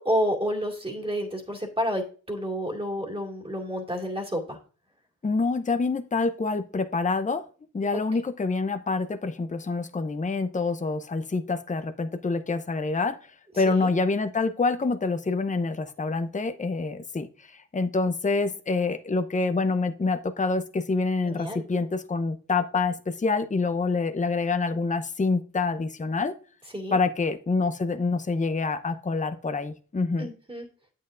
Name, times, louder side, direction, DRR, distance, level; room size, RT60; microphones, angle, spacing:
voice 1, 0.0-4.6 7.9-8.0 13.7-13.9 21.2-21.6 26.7-27.0 30.2-30.7, equal, 15° right, 0 dB, 2.2 m, -30 dB
voice 2, 5.2-7.4 7.7-13.2 13.6-17.3 17.5-26.3 26.9-30.3, left 3 dB, 20° left, 10 dB, 0.6 m, -26 dB
8.4 x 7.6 x 2.5 m, 0.39 s
cardioid pair, 65°, 36 cm